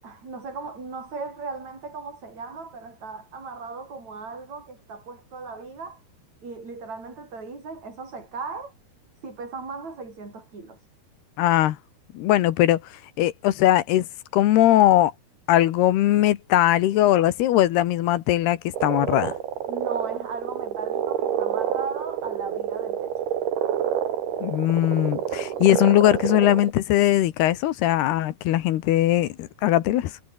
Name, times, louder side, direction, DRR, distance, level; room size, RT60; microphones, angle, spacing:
voice 1, 0.0-6.0 6.4-8.7 9.2-10.9 19.7-23.3, right 4 dB, 40° right, 9.1 m, -37 dB
voice 2, 11.4-11.8 12.1-12.8 13.2-14.1 14.3-15.1 15.5-19.3 24.4-30.1, left 14 dB, 75° left, 3.2 m, -20 dB
sound 1, 18.7-26.7, right 10 dB, 70° right, 4.2 m, -28 dB
omnidirectional pair, 4.7 m